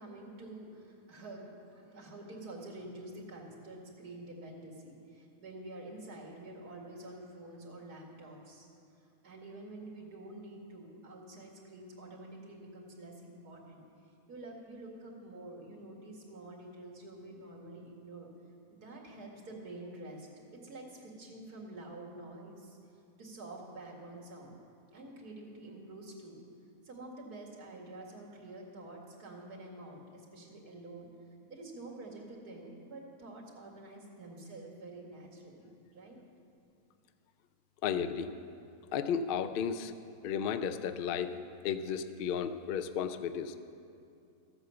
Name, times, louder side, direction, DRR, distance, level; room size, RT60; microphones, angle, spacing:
voice 1, 0.0-8.7 9.2-13.8 14.3-18.3 18.7-22.8 23.2-24.6 24.9-26.4 26.8-31.1 31.5-36.2, right 2 dB, 85° right, -2 dB, 2.5 m, -48 dB
voice 2, 37.8-38.3 38.9-39.9 40.2-41.3 41.6-43.5, left 7 dB, 85° left, 10 dB, 0.4 m, -33 dB
13.5 x 8.1 x 6.8 m, 2.6 s
omnidirectional pair, 1.6 m